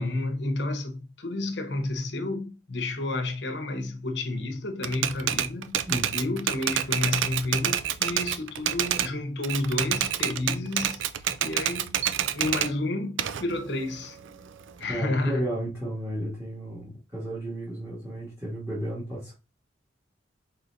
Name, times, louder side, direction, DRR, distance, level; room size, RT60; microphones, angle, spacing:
voice 1, 0.0-5.8 6.1-11.0 11.4-12.0 12.3-14.2 14.8-15.6, left 2 dB, 65° left, 0.9 m, -30 dB
Typewriter, 4.8-9.1 9.4-12.7 13.2-14.8, right 10 dB, 85° right, 0.4 m, -28 dB
voice 2, 5.9-6.2 14.9-19.3, right 1 dB, 15° right, 1.5 m, -33 dB
4.1 x 4.0 x 2.6 m
head